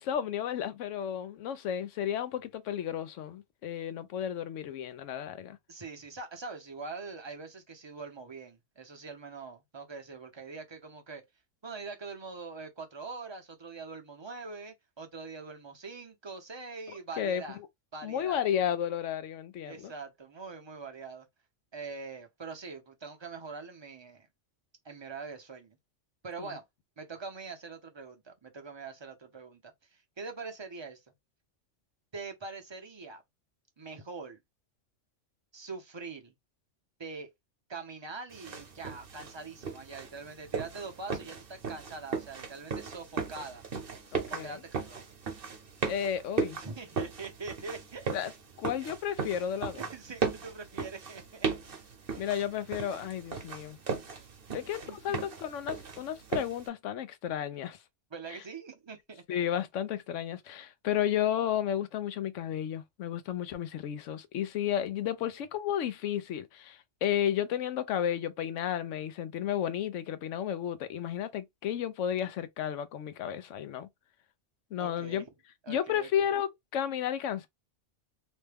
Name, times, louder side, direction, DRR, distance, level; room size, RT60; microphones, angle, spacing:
voice 1, 0.0-5.6 17.2-17.4 18.0-19.9 26.4-26.6 44.1-44.6 45.9-46.6 48.1-48.3 48.6-49.8 52.2-53.8 54.5-57.8 59.3-73.9 74.7-75.2 75.7-77.5, left 10 dB, 80° left, 0.9 m, -32 dB
voice 2, 5.7-11.2 11.6-17.6 17.9-18.5 19.6-21.3 21.7-24.3 24.8-25.8 26.2-26.6 27.0-31.0 32.1-33.2 33.8-34.4 35.5-36.3 37.0-37.3 37.7-43.6 44.3-45.0 46.6-48.1 48.8-48.9 49.8-51.5 54.9-55.2 58.1-59.2 74.8-75.2 75.6-76.3, right 4 dB, 30° right, 0.6 m, -43 dB
sound 1, 38.3-56.7, right 5 dB, 50° right, 1.0 m, -37 dB
3.1 x 2.2 x 3.3 m
omnidirectional pair, 1.3 m